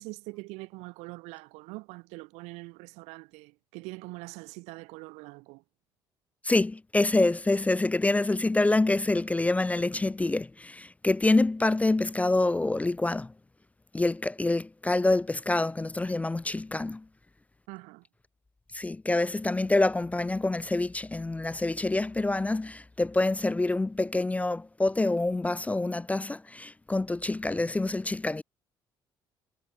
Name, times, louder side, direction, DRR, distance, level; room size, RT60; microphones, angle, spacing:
voice 1, 0.0-5.6 17.7-18.0, right 26 dB, 70° right, 0.4 m, -43 dB
voice 2, 6.4-13.3 13.9-17.0 18.7-28.4, left 2 dB, 10° left, 0.3 m, -26 dB
hypercardioid pair, 50°, 12 cm